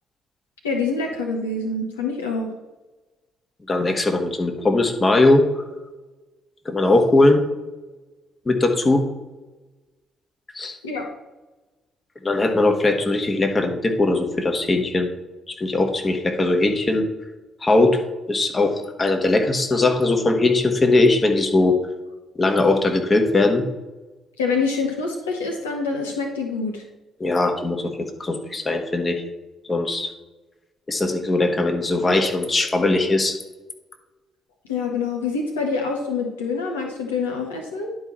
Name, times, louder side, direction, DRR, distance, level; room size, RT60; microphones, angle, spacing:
voice 1, 0.6-2.5 10.8-11.1 24.4-26.8 34.7-37.9, left 4 dB, 80° left, 1 dB, 0.8 m, -26 dB
voice 2, 3.7-5.5 6.6-7.4 8.4-9.0 10.5-10.8 12.2-15.1 15.5-17.0 17.6-18.0 18.3-21.8 22.3-23.6 27.2-27.9 28.2-29.2 29.6-30.1 30.9-33.4, left 2 dB, 30° left, 4 dB, 1.4 m, -20 dB
10.5 x 4.8 x 4.2 m, 1.1 s
figure-of-eight pair, 40°, 0 cm